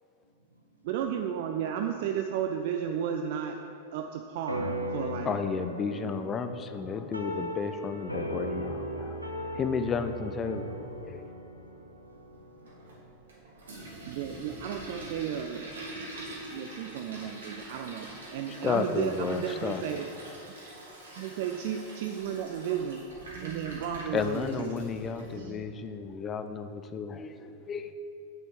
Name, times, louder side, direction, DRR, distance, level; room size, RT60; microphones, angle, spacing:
voice 1, 0.2-0.9 11.6-11.7 12.0-14.4 16.3-16.9, equal, 85° right, 2 dB, 0.8 m, -63 dB
voice 2, 0.8-3.6 3.9-5.3 14.0-15.7 16.5-20.1 21.2-23.0 23.3-24.7 25.3-25.7, right 9 dB, 50° right, 5 dB, 0.3 m, -33 dB
sound 1, 4.5-13.2, equal, 90° left, 0.6 m, -38 dB
voice 3, 5.0-10.7 11.0-11.3 18.5-20.0 24.1-27.9, left 5 dB, 25° left, 9 dB, 0.4 m, -33 dB
Toilet flush, 12.6-25.4, right 1 dB, 70° right, 1.5 m, -44 dB
6.6 x 4.2 x 6.0 m, 2.6 s
figure-of-eight pair, 90°, 0 cm